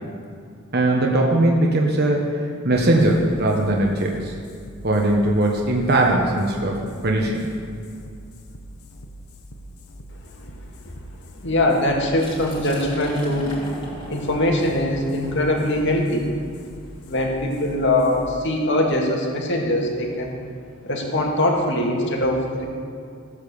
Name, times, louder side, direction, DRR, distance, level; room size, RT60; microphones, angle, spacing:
voice 1, 0.7-4.3 4.8-6.7 7.0-7.5, right 1 dB, 45° right, 0 dB, 1.3 m, -20 dB
sound 1, 2.7-19.8, equal, 85° left, 1.3 m, -43 dB
voice 2, 11.4-13.5 14.1-16.3 17.1-20.3 20.8-22.6, left 1 dB, 55° left, 0 dB, 2.2 m, -22 dB
Liquid, 12.1-17.8, equal, 25° left, 3.0 m, -39 dB
15.0 x 8.5 x 7.0 m, 2.4 s
head